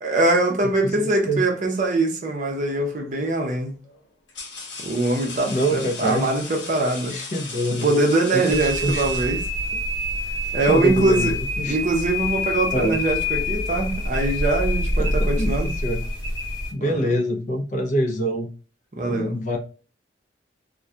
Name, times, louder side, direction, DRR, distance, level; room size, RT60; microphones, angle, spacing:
voice 1, 0.0-3.8 4.8-7.2 7.8-9.5 10.5-11.3 11.7-15.7 16.8-17.1 18.9-19.4, right 2 dB, 45° right, 0.6 m, -23 dB
voice 2, 0.6-1.4 5.5-6.3 7.1-7.9 8.3-9.0 10.4-11.3 11.6-11.8 12.7-13.0 15.0-16.0 16.7-18.5 19.1-19.6, equal, 40° left, 0.5 m, -25 dB
sound 1, 2.7-3.0 3.8-9.8, left 4 dB, 90° left, 0.7 m, -37 dB
sound 2, 8.5-16.7, left 1 dB, 20° left, 0.9 m, -26 dB
2.3 x 2.1 x 2.6 m
head